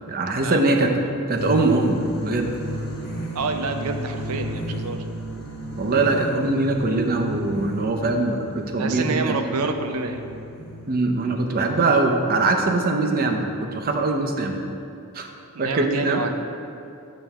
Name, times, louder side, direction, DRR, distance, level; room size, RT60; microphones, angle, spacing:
voice 1, 0.1-0.9 1.3-2.5 5.8-9.4 10.9-14.6 15.1-15.3 15.6-16.2, right 2 dB, 45° right, 3 dB, 0.6 m, -22 dB
sound 1, 1.3-12.3, equal, 45° left, 1.1 m, -33 dB
voice 2, 3.3-5.0 8.8-10.3 15.5-16.4, right 3 dB, 85° right, 6 dB, 0.5 m, -27 dB
7.1 x 3.4 x 5.9 m, 2.6 s
head